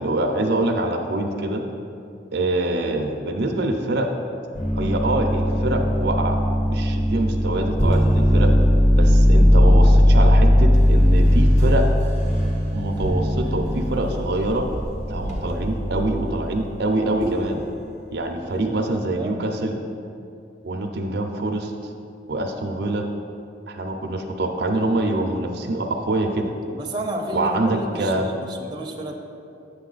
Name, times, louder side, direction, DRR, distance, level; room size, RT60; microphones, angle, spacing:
voice 1, 0.0-1.6 2.3-4.1 4.7-6.4 6.7-8.5 9.0-11.8 12.7-14.6 15.1-17.6 18.1-19.8 20.6-21.7 22.3-23.1 23.7-26.5 27.3-28.3, right 2 dB, 60° right, 4 dB, 0.6 m, -25 dB
sound 1, 4.6-16.3 17.2-17.6, equal, 35° left, 1.3 m, -18 dB
voice 2, 18.2-19.4 22.6-22.7 26.7-29.1, right 1 dB, 25° right, 0 dB, 0.7 m, -32 dB
8.3 x 6.7 x 3.9 m, 2.6 s
head